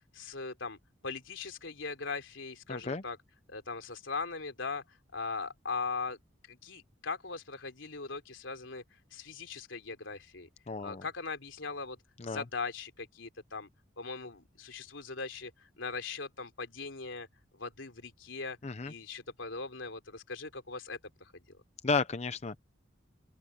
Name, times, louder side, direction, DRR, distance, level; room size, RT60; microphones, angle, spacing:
voice 1, 0.1-0.8 1.0-3.2 3.5-4.8 5.1-6.2 6.5-8.8 9.1-10.5 10.8-12.0 12.2-13.7 14.0-17.3 17.5-18.6 18.9-21.6, left 4 dB, 90° left, 3.4 m, -40 dB
voice 2, 2.7-3.0 10.7-11.0 12.2-12.4 18.6-18.9 21.8-22.6, left 4 dB, 35° left, 0.6 m, -33 dB
open air
head